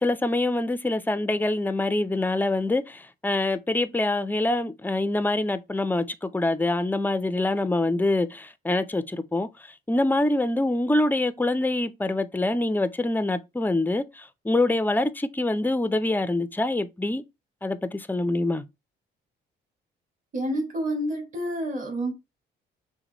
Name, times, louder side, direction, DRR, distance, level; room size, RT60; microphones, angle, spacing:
voice 1, 0.0-9.5 9.9-17.2 17.6-18.6, left 2 dB, 10° left, 0.5 m, -25 dB
voice 2, 20.3-22.1, right 1 dB, 40° right, 2.1 m, -28 dB
5.9 x 2.2 x 4.1 m
cardioid pair, 90°, 20 cm